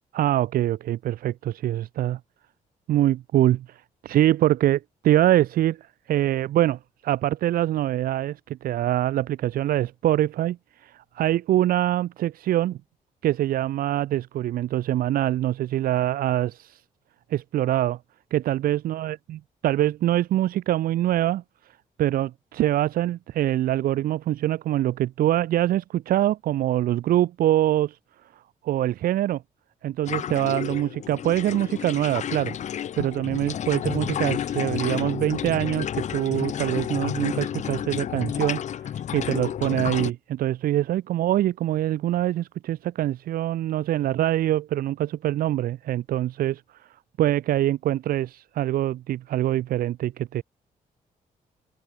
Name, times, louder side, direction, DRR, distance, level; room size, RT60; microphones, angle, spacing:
voice 1, 0.1-2.2 2.9-5.8 6.1-12.8 13.2-16.8 17.3-18.0 18.3-19.1 19.6-21.4 22.0-28.0 28.6-29.4 29.8-32.5 33.0-38.6 39.1-46.6 47.2-50.4, right 13 dB, 85° right, 0.8 m, -24 dB
sound 1, 30.1-40.1, left 9 dB, 55° left, 1.3 m, -30 dB
open air
wide cardioid pair, 175°, 15 cm